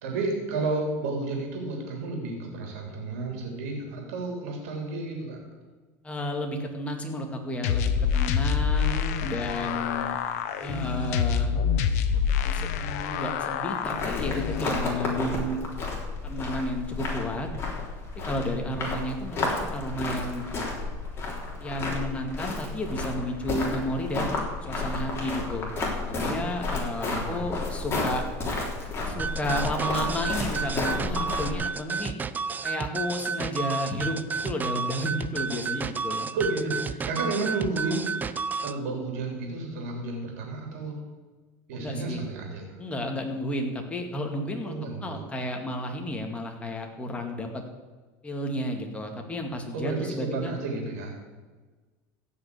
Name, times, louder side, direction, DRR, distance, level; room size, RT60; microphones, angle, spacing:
voice 1, 0.0-5.4 26.8-27.5 36.3-38.1 38.6-41.0 41.7-42.8 44.6-45.2 49.7-51.1, right 3 dB, 85° right, 1 dB, 3.2 m, -32 dB
voice 2, 6.0-10.1 10.6-11.6 12.4-15.6 16.2-17.5 18.2-20.4 21.6-25.7 26.0-28.2 29.1-32.1 32.6-36.3 41.7-42.2 42.8-44.7 45.0-47.6 48.2-50.5, left 1 dB, 15° left, 3 dB, 2.2 m, -32 dB
sound 1, 7.6-14.6, left 7 dB, 80° left, 1.1 m, -27 dB
sound 2, 13.8-31.5, left 3 dB, 30° left, 3.6 m, -32 dB
sound 3, 29.2-38.8, right 5 dB, 20° right, 0.5 m, -31 dB
15.5 x 5.6 x 8.4 m, 1.3 s
supercardioid pair, 120°, 8 cm